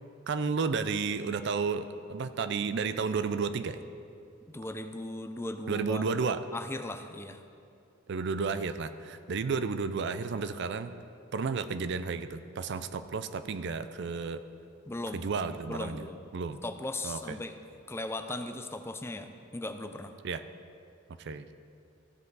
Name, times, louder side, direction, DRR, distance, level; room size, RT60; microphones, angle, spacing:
voice 1, 0.3-3.8 5.7-6.4 8.1-10.9 11.3-14.4 15.1-16.0 16.3-16.6 17.0-17.4 20.2-20.4 21.2-21.4, right 5 dB, 60° right, 11 dB, 0.4 m, -32 dB
voice 2, 4.4-6.1 6.5-7.4 14.9-15.3 15.6-16.2 16.6-17.6 17.9-20.1, left 2 dB, 15° left, 8 dB, 0.4 m, -38 dB
15.0 x 7.5 x 4.0 m, 2.5 s
head